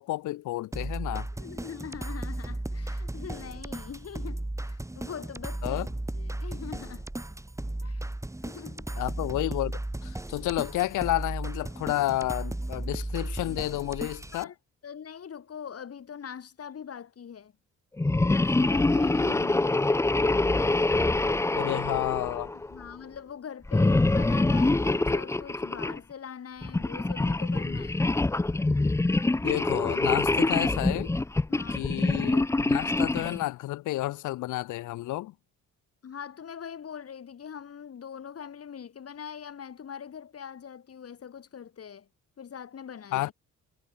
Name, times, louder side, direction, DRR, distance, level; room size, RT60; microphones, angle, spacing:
voice 1, 0.0-1.3 5.6-5.9 9.0-14.5 21.5-22.5 29.4-31.1 31.7-35.3 43.1-43.3, left 16 dB, 80° left, 0.8 m, -31 dB
sound 1, 0.7-14.4, right 1 dB, 10° right, 3.5 m, -35 dB
voice 2, 1.3-5.8 6.1-7.1 7.8-8.1 8.4-8.9 14.3-14.5 14.8-17.5 18.2-19.8 22.5-28.1 31.5-31.9 36.0-42.1 42.4-43.3, left 7 dB, 50° left, 6.7 m, -42 dB
sound 2, 18.0-22.8 23.7-26.0 26.6-33.4, left 2 dB, 10° left, 0.6 m, -25 dB
cardioid pair, 90°, 30 cm